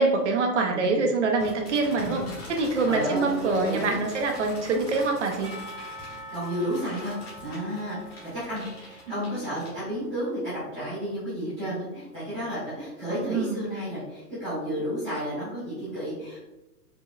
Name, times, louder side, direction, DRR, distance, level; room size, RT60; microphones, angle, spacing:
voice 1, 0.0-5.6 9.1-9.2 13.1-13.6, right 3 dB, 50° right, 3 dB, 0.5 m, -25 dB
voice 2, 0.7-1.1 2.0-2.4 2.8-4.0 6.1-7.1 7.4-16.4, equal, ahead, -24 dB, 0.6 m, -32 dB
sound 1, 1.4-10.1, left 1 dB, 40° left, 1.3 m, -44 dB
Percussion / Church bell, 5.4-10.5, equal, 90° right, 1.0 m, -45 dB
5.0 x 2.1 x 2.2 m, 1.0 s
hypercardioid pair, 175°, 47 cm